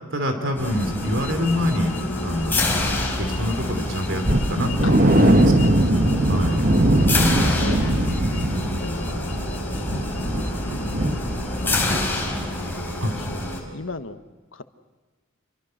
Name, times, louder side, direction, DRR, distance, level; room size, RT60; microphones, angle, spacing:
voice 1, 0.1-2.5 3.2-6.7 8.4-9.1 13.0-13.2, equal, 70° right, 6 dB, 3.2 m, -26 dB
sound 1, 0.6-12.0, left 2 dB, 35° left, 0.9 m, -34 dB
sound 2, 0.6-13.6, left 2 dB, 10° left, 4.4 m, -28 dB
sound 3, 4.2-12.0 12.3-12.5 12.9-13.0, right 1 dB, 45° right, 1.4 m, -21 dB
voice 2, 5.2-5.8 7.0-8.0 8.3-9.4 10.3-10.8 11.6-12.0 12.9-13.4 13.7-14.2 14.5-14.6, left 3 dB, 75° left, 9 dB, 1.3 m, -37 dB
28.0 x 23.0 x 6.6 m, 1.3 s
head